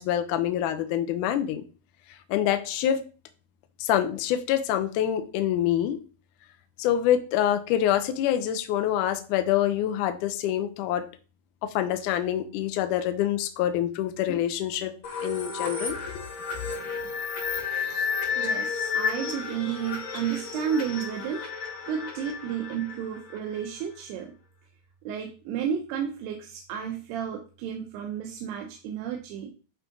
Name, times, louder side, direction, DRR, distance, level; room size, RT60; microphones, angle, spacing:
voice 1, 0.0-1.6 2.3-3.0 3.8-6.0 6.8-11.1 11.6-14.9 15.2-16.3, left 11 dB, 75° left, 1.9 m, -26 dB
sound 1, 15.0-23.6, left 5 dB, 55° left, 4.0 m, -32 dB
voice 2, 16.6-17.1 18.3-21.5 21.9-24.3 25.0-29.5, right 8 dB, 90° right, 2.9 m, -32 dB
11.0 x 3.9 x 3.8 m
omnidirectional pair, 4.6 m